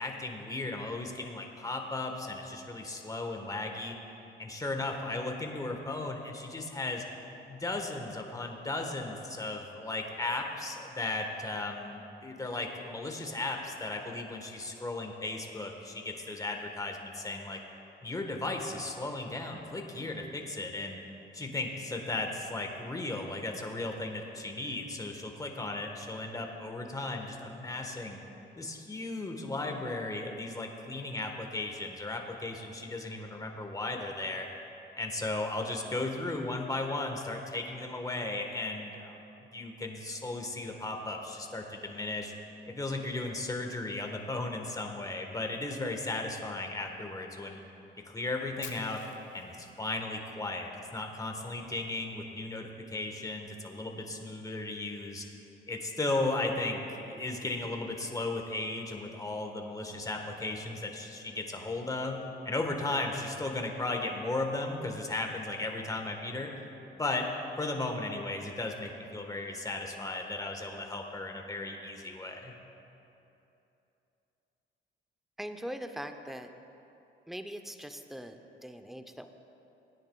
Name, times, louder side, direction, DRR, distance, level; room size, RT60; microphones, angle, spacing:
voice 1, 0.0-3.9 4.4-7.0 7.5-17.6 18.0-21.0 21.3-28.2 28.6-34.5 35.0-39.2 39.5-42.3 42.7-47.6 48.0-49.0 49.3-55.2 55.7-66.5 66.9-67.3 67.6-72.5, left 2 dB, 15° left, 3 dB, 1.3 m, -36 dB
Fire, 48.6-50.7, left 8 dB, 70° left, 1.1 m, -49 dB
voice 2, 75.4-76.5 77.3-79.3, equal, ahead, 7 dB, 0.6 m, -41 dB
18.0 x 9.8 x 2.3 m, 2.9 s
cardioid pair, 90°, 20 cm